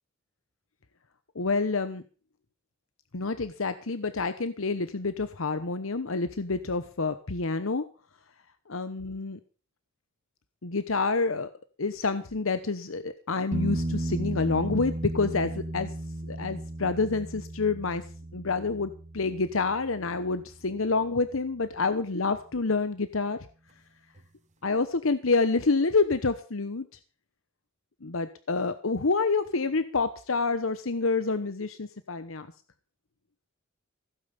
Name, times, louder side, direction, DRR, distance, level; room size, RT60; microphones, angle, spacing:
voice 1, 1.3-2.0 3.1-7.8 8.7-9.4 10.6-11.5 11.8-15.9 16.3-18.0 18.3-23.5 24.6-26.9 28.0-32.5, left 3 dB, 75° left, 12 dB, 1.0 m, -28 dB
sound 1, 13.5-21.1 24.2-24.3, right 1 dB, 35° right, 1.3 m, -35 dB
16.0 x 8.9 x 6.9 m, 0.38 s
head